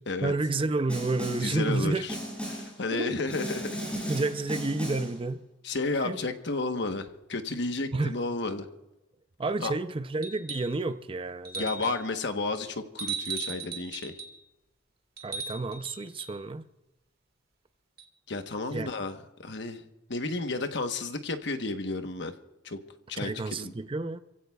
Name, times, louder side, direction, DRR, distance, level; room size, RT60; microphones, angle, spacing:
voice 1, 0.2-2.1 2.9-3.1 4.1-5.4 6.0-6.2 7.9-8.2 9.4-11.9 15.2-16.6 18.7-18.9 23.2-24.2, right 3 dB, 30° right, 0.5 m, -30 dB
Snare drum, 0.9-1.6 2.1-2.8 3.3-5.2, equal, 5° left, 7.3 m, -36 dB
voice 2, 1.4-2.2 2.5-3.9 5.6-8.7 9.6-9.7 11.6-14.1 18.3-19.8 20.1-22.3 22.6-22.8 23.1-23.7, left 3 dB, 70° left, 1.1 m, -32 dB
sound 1, 10.2-10.8 11.4-12.1 13.0-14.4 15.2-16.4 18.0-18.1, right 5 dB, 55° right, 1.8 m, -37 dB
27.5 x 16.0 x 2.3 m
head